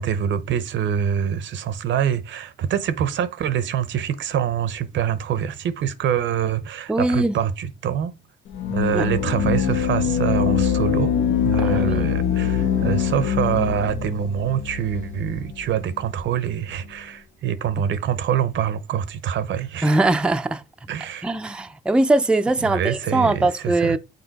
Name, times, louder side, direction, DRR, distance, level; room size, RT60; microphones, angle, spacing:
voice 1, 0.0-8.1 8.7-11.1 11.4-20.0 20.9-21.3 22.6-24.0, right 8 dB, 70° right, 0.7 m, -25 dB
voice 2, 6.9-7.4 8.9-9.0 11.6-12.1 19.8-20.6 21.2-24.0, right 2 dB, 5° right, 0.4 m, -21 dB
sound 1, 8.5-15.7, left 8 dB, 80° left, 0.8 m, -23 dB
6.5 x 4.2 x 4.0 m
cardioid pair, 90°, 20 cm